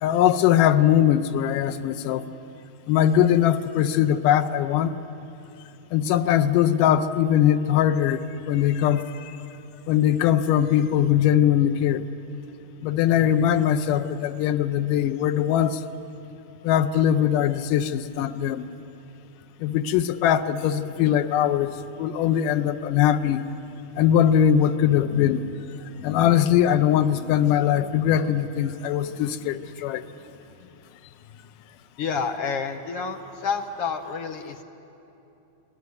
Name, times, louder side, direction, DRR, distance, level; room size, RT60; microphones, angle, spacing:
voice 1, 0.0-2.2 2.9-4.9 5.9-9.4 9.9-12.1 12.8-15.8 16.6-18.8 19.6-23.4 24.0-25.6 25.9-30.0, left 10 dB, 90° left, 9 dB, 2.3 m, -21 dB
voice 2, 32.0-34.6, left 5 dB, 65° left, 5 dB, 1.5 m, -29 dB
22.0 x 18.5 x 9.5 m, 2.9 s
omnidirectional pair, 3.7 m